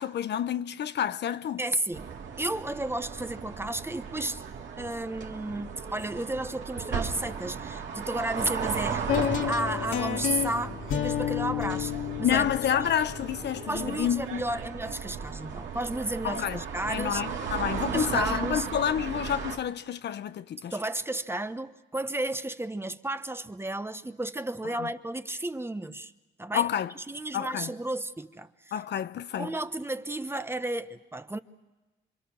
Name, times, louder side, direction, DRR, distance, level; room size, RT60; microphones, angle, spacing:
voice 1, 0.0-1.7 12.2-14.4 16.2-16.6 16.9-20.7 24.8-24.9 26.5-26.9 27.3-27.7 28.7-29.5, left 9 dB, 60° left, 0.7 m, -29 dB
voice 2, 1.6-2.1 2.4-4.4 4.8-11.9 12.2-12.5 13.7-17.2 17.9-18.7 20.7-26.1 26.4-26.7 27.0-28.5 29.4-31.4, right 1 dB, 10° right, 1.0 m, -33 dB
sound 1, 1.9-19.6, right 6 dB, 70° right, 2.8 m, -36 dB
sound 2, 9.1-15.1, left 9 dB, 85° left, 2.3 m, -31 dB
27.5 x 24.5 x 6.1 m
cardioid pair, 90°, 20 cm